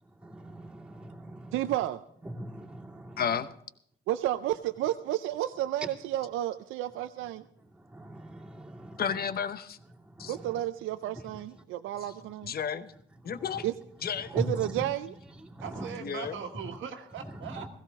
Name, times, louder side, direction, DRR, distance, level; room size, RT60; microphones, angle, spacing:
voice 1, 0.0-1.7 2.2-3.4 7.7-9.1 10.0-10.6 11.1-11.6 13.2-13.7 14.1-14.9 15.4-15.9 17.4-17.7, equal, 5° right, -3 dB, 2.7 m, -41 dB
voice 2, 1.5-2.0 4.1-7.4 10.3-12.5 13.6-13.7 14.3-15.1, right 13 dB, 90° right, 10 dB, 0.5 m, -31 dB
voice 3, 3.2-3.5 9.0-9.8 10.2-10.3 12.4-12.9 13.2-13.7 14.0-14.3 16.0-16.4, left 7 dB, 50° left, 12 dB, 0.9 m, -32 dB
voice 4, 15.6-17.7, right 7 dB, 75° right, 3 dB, 1.5 m, -40 dB
16.5 x 15.0 x 3.6 m, 0.68 s
cardioid pair, 90°, 20 cm